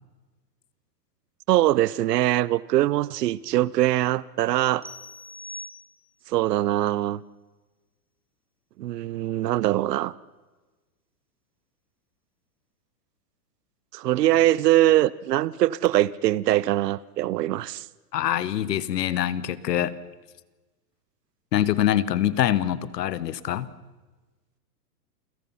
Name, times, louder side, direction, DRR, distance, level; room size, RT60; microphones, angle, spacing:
voice 1, 1.5-4.8 6.3-7.2 8.8-10.1 13.9-17.9, right 14 dB, 80° right, 0.8 m, -22 dB
sound 1, 4.8-6.4, left 1 dB, 5° right, 0.9 m, -42 dB
voice 2, 18.1-19.9 21.5-23.7, left 11 dB, 80° left, 1.4 m, -24 dB
28.5 x 17.0 x 5.6 m
supercardioid pair, 180°, 48 cm